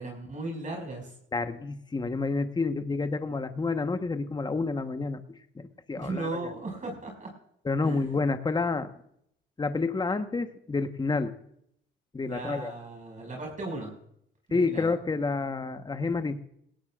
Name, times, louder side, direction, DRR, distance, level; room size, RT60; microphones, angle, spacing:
voice 1, 0.0-1.1 6.0-7.3 7.8-8.2 12.3-13.9 14.5-14.9, right 2 dB, 40° right, 1 dB, 5.5 m, -36 dB
voice 2, 1.3-6.5 7.6-8.9 9.6-11.3 12.1-12.7 14.5-16.4, left 3 dB, 20° left, 8 dB, 1.1 m, -29 dB
18.0 x 17.5 x 2.4 m, 0.70 s
cardioid pair, 90°, 20 cm